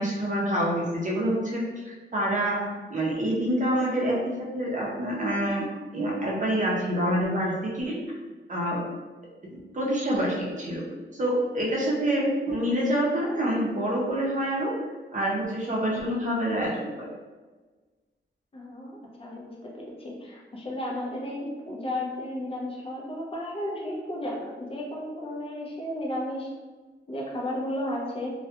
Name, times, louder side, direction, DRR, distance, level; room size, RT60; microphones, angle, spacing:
voice 1, 0.0-5.6 5.9-8.0 8.5-8.8 9.4-10.8 11.1-14.7 15.1-17.0, equal, 40° right, -4 dB, 0.6 m, -27 dB
voice 2, 18.5-26.5 27.1-28.3, left 1 dB, 30° left, -3 dB, 0.5 m, -33 dB
2.2 x 2.2 x 2.8 m, 1.3 s
wide cardioid pair, 125°, 20 cm